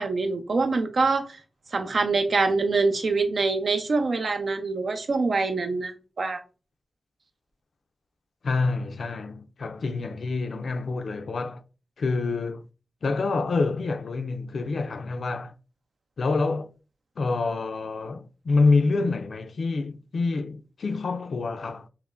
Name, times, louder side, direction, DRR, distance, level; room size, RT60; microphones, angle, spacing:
voice 1, 0.0-1.4 1.7-6.4, right 3 dB, 70° right, 0.6 m, -25 dB
voice 2, 8.4-11.6 12.0-12.6 13.0-15.5 16.2-16.7 17.2-21.9, left 3 dB, 80° left, 0.4 m, -27 dB
5.7 x 2.1 x 2.5 m
wide cardioid pair, 85°, 0 cm